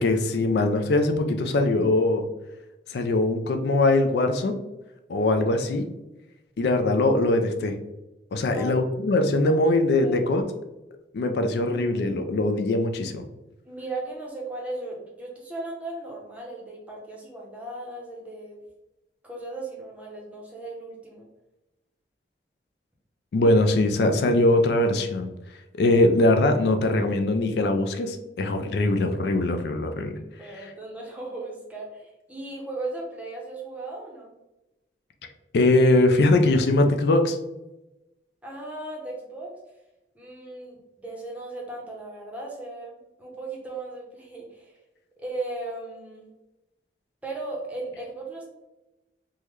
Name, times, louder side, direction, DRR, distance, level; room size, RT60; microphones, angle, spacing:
voice 1, 0.0-2.2 2.9-4.6 5.1-5.8 6.6-7.7 8.3-10.4 11.1-13.3 23.3-25.3 25.7-30.2 35.5-37.4, left 2 dB, 70° left, 6 dB, 0.3 m, -21 dB
voice 2, 13.6-18.6 19.2-21.3 30.4-34.3 38.4-39.5 40.1-44.8 45.2-46.3 47.2-48.5, right 2 dB, 10° right, -3 dB, 0.7 m, -37 dB
3.6 x 2.1 x 3.0 m, 0.98 s
head